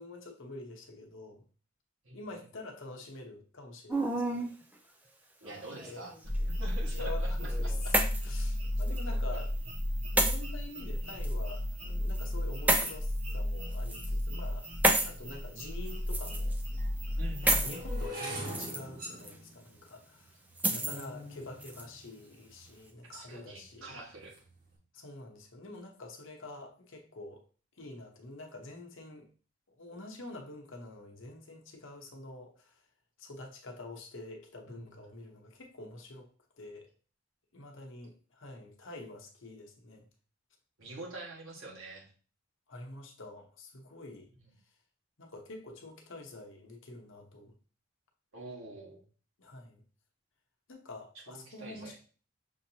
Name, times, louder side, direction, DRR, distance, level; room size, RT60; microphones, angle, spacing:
voice 1, 0.0-1.4 2.1-4.5 5.7-6.1 6.9-8.0 8.2-9.5 10.1-14.7 15.0-16.5 17.4-20.4 20.7-24.0 24.9-27.4 27.8-29.3 29.7-32.8 33.2-36.3 36.6-36.9 37.5-40.0 42.7-44.3 45.2-47.5 49.4-49.8 50.7-52.0, left 2 dB, 65° left, 3 dB, 0.9 m, -47 dB
voice 2, 2.0-2.4 5.4-6.1 6.5-7.9 17.2-17.8 23.0-24.4 34.7-35.0 40.8-42.1 48.3-49.0 51.1-52.0, right 2 dB, 75° right, -2 dB, 1.5 m, -46 dB
sound 1, 3.9-4.5 5.5-6.2 7.4-8.4 8.8-9.0 10.2-10.4 11.2-11.3 12.7-12.9 13.7-14.1 14.8-15.1 16.1-16.6 17.5-17.8 18.3-18.8 19.2-19.3 20.6-21.0 21.6-21.8, right 1 dB, 10° right, 0.4 m, -29 dB
sound 2, 6.2-18.1, left 1 dB, 30° right, 0.8 m, -33 dB
sound 3, 15.9-16.0 16.7-22.9 23.5-23.9 24.1-24.5, right 1 dB, 45° right, 1.3 m, -44 dB
6.3 x 2.8 x 2.7 m, 0.39 s
head